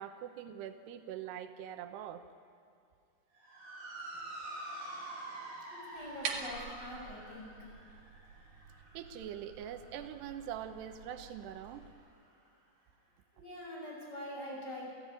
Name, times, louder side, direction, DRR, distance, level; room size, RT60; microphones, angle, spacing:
voice 1, 0.0-2.2 8.9-11.9, right 10 dB, 90° right, 8 dB, 3.1 m, -43 dB
Motor vehicle (road) / Siren, 3.3-11.9, right 2 dB, 50° right, 8.5 m, -48 dB
voice 2, 5.7-7.5 13.3-14.9, left 1 dB, 25° left, -3 dB, 6.9 m, -44 dB
sound 1, 6.0-11.9, right 5 dB, 65° right, 3.6 m, -46 dB
29.0 x 14.5 x 9.7 m, 2.5 s
omnidirectional pair, 4.7 m